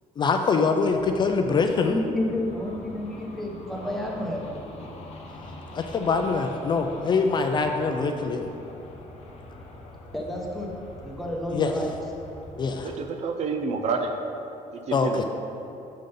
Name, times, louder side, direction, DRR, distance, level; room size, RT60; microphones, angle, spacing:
voice 1, 0.2-2.0 5.7-8.5 11.5-11.7 12.6-12.9 14.9-15.2, left 4 dB, 35° left, 5 dB, 0.4 m, -24 dB
sound 1, 0.8-12.9, left 2 dB, 50° left, 0.9 m, -44 dB
voice 2, 1.9-4.5 10.1-10.7 11.0-11.9, left 1 dB, ahead, -2 dB, 0.9 m, -30 dB
voice 3, 12.8-14.1 14.7-15.2, right 4 dB, 55° right, 4 dB, 0.5 m, -29 dB
6.7 x 3.8 x 5.2 m, 2.9 s
cardioid pair, 135°, 13 cm